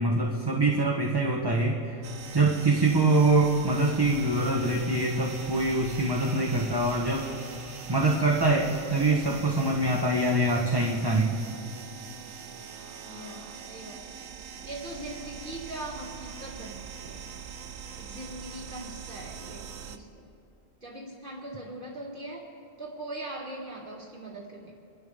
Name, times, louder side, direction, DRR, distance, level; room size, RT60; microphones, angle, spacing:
voice 1, 0.0-2.0 2.3-7.3 7.9-11.3, right 2 dB, 20° right, -1 dB, 1.1 m, -24 dB
sound 1, 1.8-10.9, right 1 dB, ahead, 1.7 m, -49 dB
sound 2, 2.0-20.0, right 7 dB, 80° right, 1.0 m, -43 dB
voice 2, 13.0-14.2 14.6-17.2 18.0-20.3 20.8-22.5 22.8-24.7, right 1 dB, 50° right, -4 dB, 2.4 m, -41 dB
28.5 x 12.0 x 3.5 m, 2.7 s
omnidirectional pair, 1.1 m